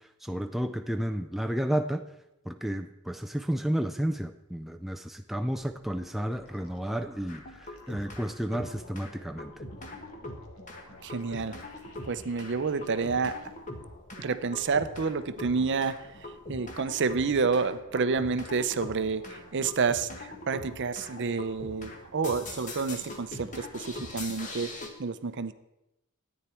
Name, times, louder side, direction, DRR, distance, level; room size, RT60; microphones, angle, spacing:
voice 1, 0.2-2.0 2.5-7.4 7.9-9.5, equal, ahead, 6 dB, 0.4 m, -31 dB
sound 1, 5.4-13.5, left 2 dB, 70° left, 1.9 m, -55 dB
sound 2, 7.3-8.2 8.5-24.9, left 2 dB, 35° left, 1.6 m, -42 dB
voice 2, 11.0-11.6 12.1-13.4 14.2-16.0 16.5-24.7 25.0-25.5, right 4 dB, 55° right, 13 dB, 0.6 m, -29 dB
13.5 x 9.6 x 4.4 m, 0.90 s
head